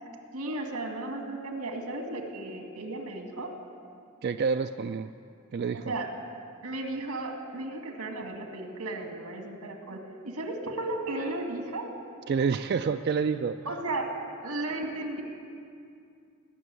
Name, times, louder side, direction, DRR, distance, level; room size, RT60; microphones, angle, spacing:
voice 1, 0.3-3.5 5.7-6.1 6.6-11.9 13.7-14.1 14.4-15.2, right 2 dB, 90° right, 3 dB, 2.0 m, -35 dB
voice 2, 4.2-5.1 5.5-5.9 12.3-13.5, right 5 dB, 45° right, 8 dB, 0.3 m, -28 dB
18.5 x 7.0 x 9.5 m, 2.4 s
head